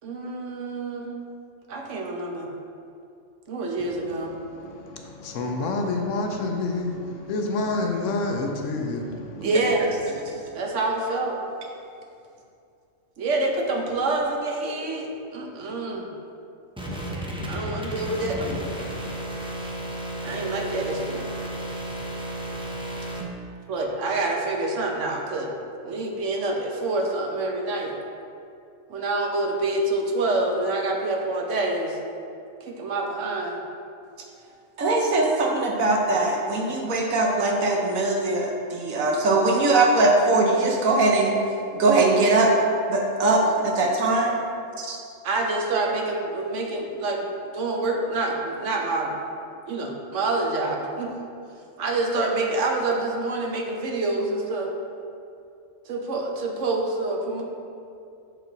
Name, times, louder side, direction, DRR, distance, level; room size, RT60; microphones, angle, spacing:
voice 1, 0.0-1.2 1.7-2.5 3.5-4.4 9.4-9.9 10.5-11.4 13.2-16.1 17.5-18.8 20.2-21.4 23.7-25.5 25.8-27.9 28.9-32.0 32.6-33.6 45.2-49.1 49.7-51.1 51.8-54.7 55.8-57.4, right 2 dB, 65° right, 1 dB, 1.1 m, -27 dB
voice 2, 4.3-9.5 10.3-10.4, left 2 dB, 70° left, 3 dB, 1.0 m, -28 dB
sound 1, 16.8-23.2, right 1 dB, 5° right, 0.4 m, -33 dB
voice 3, 34.8-41.4 41.8-42.5 42.9-44.5 44.8-45.0, right 2 dB, 85° right, 0 dB, 1.3 m, -21 dB
6.4 x 4.9 x 3.9 m, 2.5 s
omnidirectional pair, 1.4 m